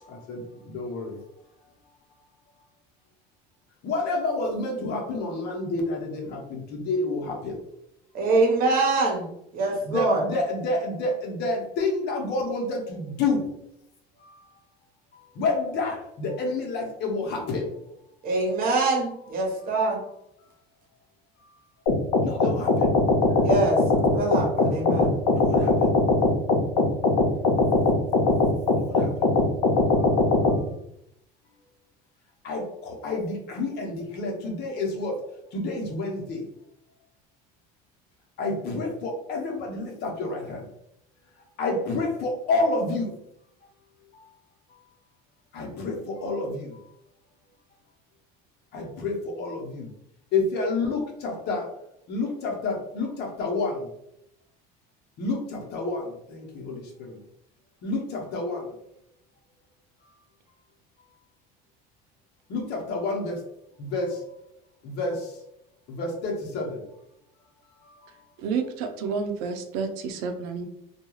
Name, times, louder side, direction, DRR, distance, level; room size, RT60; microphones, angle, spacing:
voice 1, 0.0-1.2 3.8-7.6 9.9-13.5 14.2-14.4 15.3-17.7 22.2-22.9 25.4-25.9 27.8-28.0 28.8-29.1 32.4-35.2 35.5-36.5 38.4-40.7 41.6-43.2 44.1-44.3 45.5-46.8 48.7-49.9 50.3-51.7 52.1-53.9 55.2-57.2 57.8-58.7 62.5-63.4 63.8-64.2 64.8-65.3 65.9-66.8 67.8-67.9, left 3 dB, 60° left, 0 dB, 0.8 m, -29 dB
voice 2, 8.1-9.3 9.5-10.2 18.2-20.0 23.4-23.8 24.1-25.1, right 2 dB, 50° right, 0 dB, 0.9 m, -24 dB
sound 1, 21.9-30.6, left 2 dB, 90° left, 0.6 m, -21 dB
voice 3, 68.4-70.6, right 5 dB, 90° right, 5 dB, 0.5 m, -30 dB
2.3 x 2.3 x 3.0 m, 0.78 s
cardioid pair, 115°, 19 cm